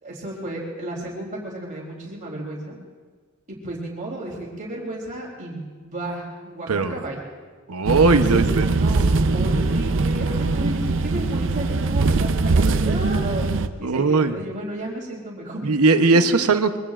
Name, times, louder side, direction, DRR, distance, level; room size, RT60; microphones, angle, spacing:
voice 1, 0.0-2.8 3.5-7.2 8.1-8.4 8.7-13.5 13.8-15.6 16.3-16.4, right 1 dB, 35° right, -2 dB, 3.3 m, -33 dB
voice 2, 6.7-7.1 7.7-8.7 13.8-14.4 15.6-16.8, right 3 dB, 85° right, 8 dB, 0.9 m, -19 dB
sound 1, 7.9-13.7, right 3 dB, 60° right, 0.6 m, -21 dB
24.0 x 23.0 x 2.5 m, 1.5 s
head